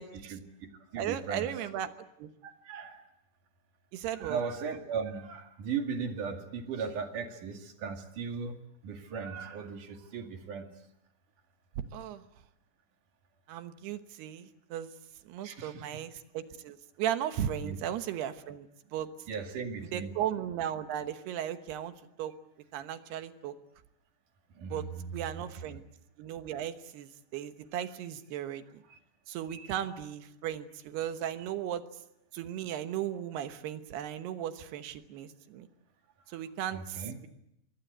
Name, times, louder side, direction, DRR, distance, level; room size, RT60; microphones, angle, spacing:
voice 1, 0.2-1.5 2.4-3.1 4.2-8.6 8.8-10.7 15.4-15.8 17.6-17.8 19.3-20.1 24.5-25.4 27.8-27.9 28.9-29.0 29.5-29.7 36.3-36.4 36.7-37.2, right 5 dB, 55° right, 5 dB, 3.4 m, -37 dB
voice 2, 1.0-1.9 2.2-2.3 3.9-4.4 11.9-12.2 13.5-14.9 15.3-18.7 18.9-19.1 19.9-21.9 22.2-22.3 22.7-23.5 24.7-24.9 25.1-25.8 26.2-28.8 29.3-31.8 32.3-35.7 36.3-37.3, right 10 dB, 75° right, 9 dB, 3.1 m, -36 dB
26.5 x 23.0 x 8.2 m, 0.81 s
omnidirectional pair, 4.9 m